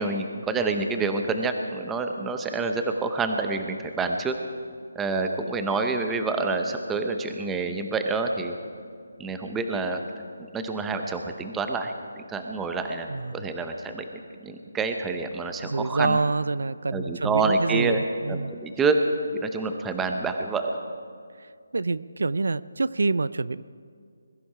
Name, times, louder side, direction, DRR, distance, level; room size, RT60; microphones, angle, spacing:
voice 1, 0.0-4.4 4.9-8.6 9.2-10.0 10.5-11.9 12.3-14.0 14.4-16.2 16.9-18.0 18.3-19.0 19.3-20.8, right 3 dB, 5° right, 5 dB, 0.7 m, -27 dB
voice 2, 15.6-18.5 21.7-23.6, right 3 dB, 75° right, 18 dB, 0.4 m, -26 dB
21.5 x 13.5 x 4.9 m, 2.2 s
hypercardioid pair, 175°, 0 cm